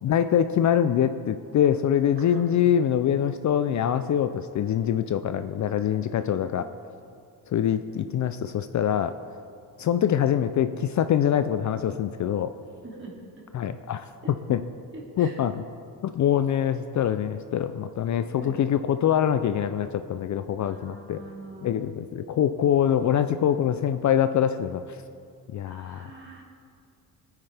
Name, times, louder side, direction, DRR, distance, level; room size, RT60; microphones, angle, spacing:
voice 1, 0.0-6.7 7.5-9.1 9.8-12.5 13.5-14.6 15.2-15.6 16.0-21.2 21.6-25.0 25.5-26.1, left 9 dB, 50° left, 10 dB, 0.5 m, -24 dB
voice 2, 12.8-13.4 14.2-14.3 14.9-15.4 18.2-18.6 20.6-21.7 25.7-26.4, right 2 dB, 30° right, -2 dB, 2.6 m, -44 dB
18.0 x 9.5 x 3.4 m, 2.4 s
cardioid pair, 115°, 39 cm